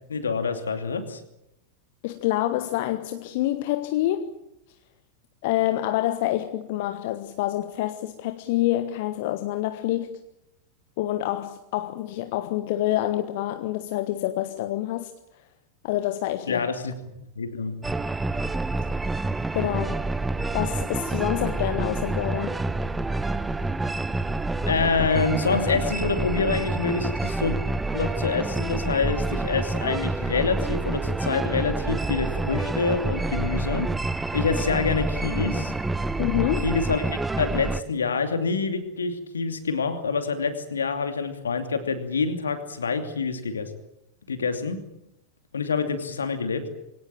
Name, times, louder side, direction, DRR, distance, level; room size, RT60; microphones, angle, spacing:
voice 1, 0.1-1.2 16.5-17.0 17.4-17.7 24.6-27.6 27.9-33.9 34.3-35.7 36.6-43.7 44.3-44.8 45.5-46.7, left 4 dB, 70° left, 8 dB, 2.7 m, -26 dB
voice 2, 2.0-4.3 5.4-10.2 11.0-15.1 15.8-16.7 19.5-20.1 20.5-22.6 36.2-36.7, left 14 dB, 50° left, 9 dB, 1.3 m, -27 dB
sound 1, 17.8-37.8, right 2 dB, 10° right, 1.0 m, -28 dB
23.5 x 18.0 x 9.0 m, 0.88 s
figure-of-eight pair, 90°, 0 cm